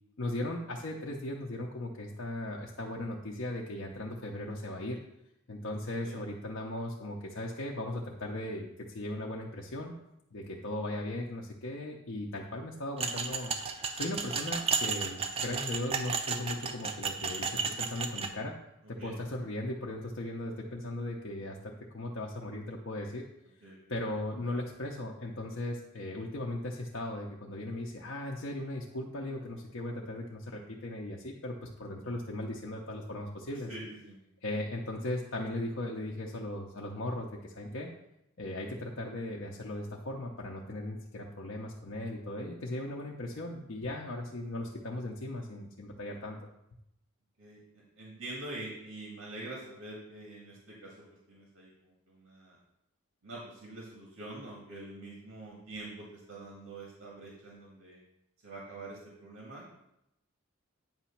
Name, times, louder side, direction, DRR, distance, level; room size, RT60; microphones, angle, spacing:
voice 1, 0.2-5.0 5.5-9.9 10.3-13.5 13.9-18.6 18.9-23.3 23.9-33.7 34.4-37.9 38.4-46.4, left 1 dB, 60° left, -2 dB, 0.7 m, -37 dB
sound 1, 13.0-18.3, right 5 dB, 30° right, 0.4 m, -33 dB
voice 2, 33.7-34.2 47.4-52.6 53.2-58.0 58.4-59.6, right 2 dB, 90° right, -3 dB, 1.6 m, -45 dB
8.9 x 3.0 x 5.7 m, 0.85 s
head